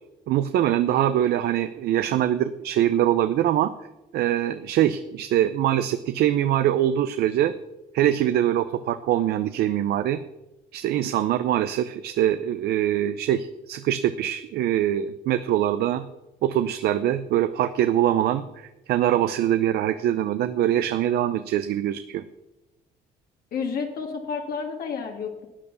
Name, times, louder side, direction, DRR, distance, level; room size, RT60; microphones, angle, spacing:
voice 1, 0.3-3.7 4.1-7.5 7.9-10.2 10.7-16.1 16.4-22.2, right 11 dB, 70° right, 11 dB, 0.7 m, -23 dB
voice 2, 23.5-25.5, left 5 dB, 65° left, 2 dB, 2.0 m, -30 dB
12.5 x 8.8 x 7.0 m, 1.0 s
cardioid pair, 110°, 17 cm